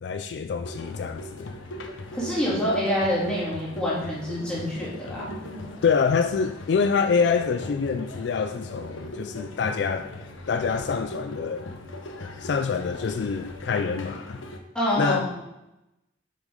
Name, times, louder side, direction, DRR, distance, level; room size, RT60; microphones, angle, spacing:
voice 1, 0.0-1.5 5.8-10.1 10.5-11.7 12.4-14.4 15.0-15.3, left 5 dB, 60° left, 8 dB, 0.3 m, -26 dB
sound 1, 0.6-14.6, left 1 dB, 85° left, 0.9 m, -39 dB
voice 2, 2.1-5.3 14.7-15.4, equal, 5° left, -9 dB, 2.9 m, -26 dB
7.7 x 6.1 x 3.9 m, 0.91 s
head